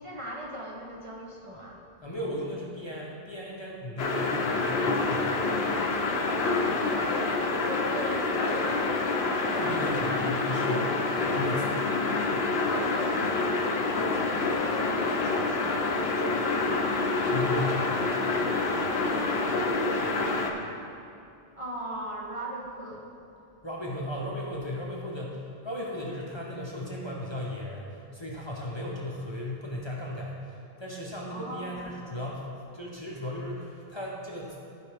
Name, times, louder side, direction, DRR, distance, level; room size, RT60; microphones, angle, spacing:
voice 1, 0.0-1.8 2.2-2.3 6.5-9.9 12.6-13.4 13.8-16.8 17.6-18.1 19.1-20.5 21.6-23.1 31.3-31.8, right 1 dB, 35° right, -3 dB, 0.9 m, -40 dB
voice 2, 2.0-5.4 9.5-11.8 17.2-17.9 23.6-32.4 32.7-34.7, left 1 dB, 30° left, -4 dB, 0.8 m, -36 dB
sound 1, 4.0-20.5, left 3 dB, 70° left, 0.9 m, -27 dB
13.0 x 4.8 x 3.4 m, 2.6 s
omnidirectional pair, 1.1 m